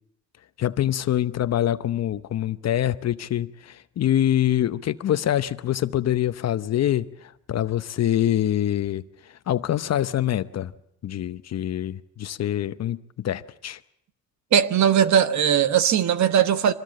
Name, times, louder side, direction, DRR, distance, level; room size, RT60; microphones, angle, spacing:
voice 1, 0.6-10.7 11.0-13.8, left 11 dB, 60° left, 0.8 m, -25 dB
voice 2, 14.5-16.7, right 9 dB, 65° right, 1.3 m, -19 dB
24.5 x 18.5 x 7.7 m
cardioid pair, 90°, 30 cm